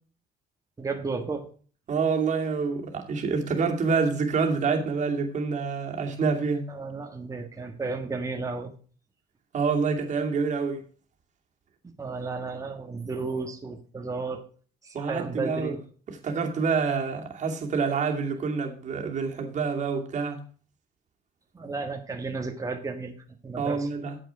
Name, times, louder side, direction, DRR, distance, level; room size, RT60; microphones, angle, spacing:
voice 1, 0.8-1.5 6.7-8.7 12.0-14.4 14.8-15.8 21.5-23.1 23.4-23.9, right 4 dB, 20° right, 1.6 m, -33 dB
voice 2, 1.9-6.6 9.5-10.8 14.9-15.8 16.1-20.4 23.6-24.2, right 5 dB, 45° right, 2.6 m, -27 dB
9.1 x 7.7 x 4.9 m
cardioid pair, 110°, 17 cm